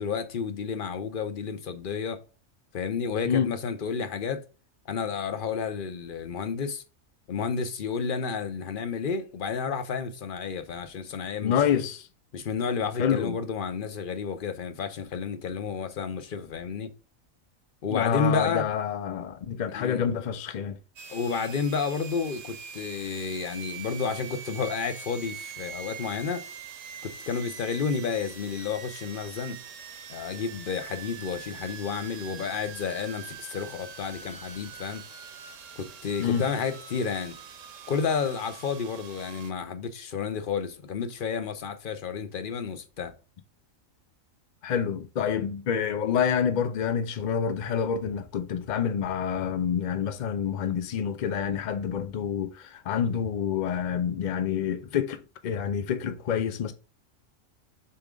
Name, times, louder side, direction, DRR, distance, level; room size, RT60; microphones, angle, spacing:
voice 1, 0.0-2.2 2.7-4.4 4.9-6.8 7.3-11.8 12.3-16.9 17.8-18.7 19.7-20.0 21.1-26.4 27.0-29.6 30.1-35.0 35.8-37.4 37.9-43.1, left 5 dB, 50° left, 0.7 m, -31 dB
voice 2, 11.4-12.1 13.0-13.4 17.9-20.8 36.2-36.5 44.6-56.7, left 8 dB, 80° left, 0.4 m, -27 dB
sound 1, 21.0-39.5, right 7 dB, 70° right, 1.1 m, -43 dB
6.8 x 3.7 x 3.8 m
omnidirectional pair, 1.4 m